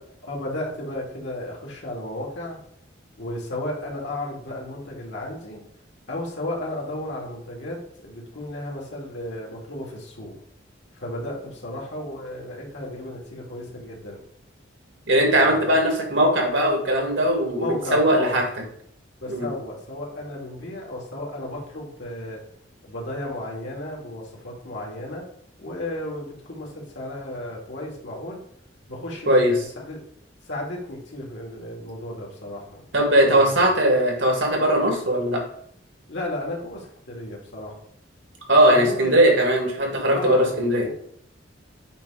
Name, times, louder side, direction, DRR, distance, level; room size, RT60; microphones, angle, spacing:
voice 1, 0.2-2.6 3.2-5.6 6.1-10.3 10.9-14.2 15.4-15.8 17.6-18.4 19.2-22.4 22.8-25.3 25.6-28.4 28.9-30.0 30.4-32.9 33.2-33.7 36.1-37.8 38.6-39.1 40.1-40.6 40.8-40.9, left 1 dB, 70° left, -2 dB, 2.2 m, -34 dB
voice 2, 15.1-17.7 17.9-18.5 19.3-19.5 29.3-29.5 32.9-35.4 38.5-40.9, right 1 dB, 75° right, 1 dB, 1.9 m, -19 dB
8.4 x 3.0 x 4.9 m, 0.66 s
head